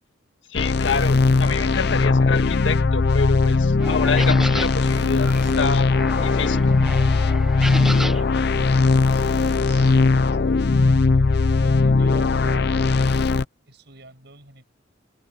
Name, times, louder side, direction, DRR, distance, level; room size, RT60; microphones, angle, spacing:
voice 1, 0.5-5.9 6.2-6.7, left 5 dB, 75° left, 1.5 m, -27 dB
sound 1, 0.5-13.4, left 3 dB, 55° left, 0.5 m, -19 dB
voice 2, 3.4-3.8 7.7-9.3 9.6-13.2 13.7-14.6, right 2 dB, 60° right, 7.3 m, -46 dB
sound 2, 3.8-9.6, equal, ahead, 1.1 m, -33 dB
head